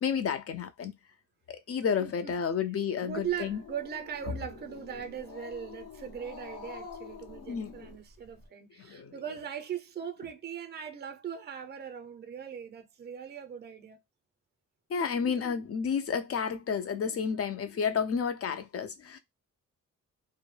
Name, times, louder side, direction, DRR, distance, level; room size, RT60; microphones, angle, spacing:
voice 1, 0.0-0.9 1.5-3.6 7.5-7.7 8.8-9.1 14.9-19.2, left 6 dB, 50° left, 0.5 m, -31 dB
voice 2, 2.0-2.3 3.0-14.0 15.4-15.6, right 8 dB, 35° right, 0.5 m, -39 dB
Growling, 3.1-8.5, left 5 dB, 80° left, 0.8 m, -47 dB
2.2 x 2.0 x 3.1 m
wide cardioid pair, 110°, 31 cm